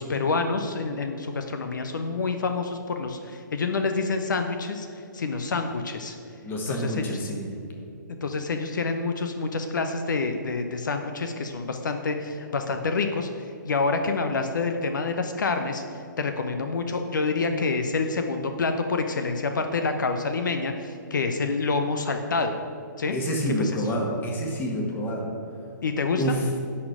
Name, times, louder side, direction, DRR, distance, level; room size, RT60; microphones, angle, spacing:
voice 1, 0.0-6.2 6.7-7.3 8.2-22.5 23.0-23.2 23.6-23.8 25.8-26.3, left 4 dB, 70° left, 6 dB, 0.8 m, -27 dB
voice 2, 6.4-7.5 23.1-25.3 26.2-26.5, equal, 20° left, 1 dB, 1.7 m, -28 dB
11.0 x 4.3 x 7.9 m, 2.6 s
figure-of-eight pair, 130°, 11 cm